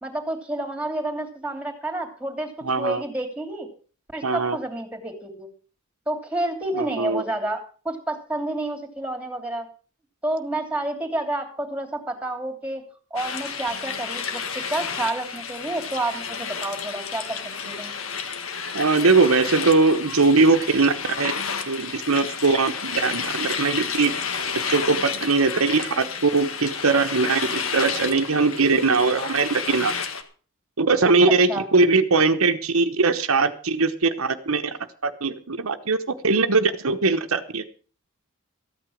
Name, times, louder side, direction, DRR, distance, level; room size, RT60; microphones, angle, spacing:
voice 1, 0.0-2.5 2.8-3.7 4.1-5.5 6.1-9.7 10.2-12.8 13.1-17.4 17.6-17.9 31.3-31.7, right 1 dB, 5° right, 6 dB, 2.8 m, -29 dB
voice 2, 2.6-3.0 4.2-4.6 6.7-7.2 18.7-21.3 21.7-24.1 24.7-29.9 30.8-34.8 35.0-36.0 36.2-37.6, right 4 dB, 75° right, 7 dB, 1.0 m, -21 dB
sound 1, 13.2-30.2, left 6 dB, 70° left, 1.7 m, -31 dB
14.0 x 9.1 x 6.3 m, 0.39 s
head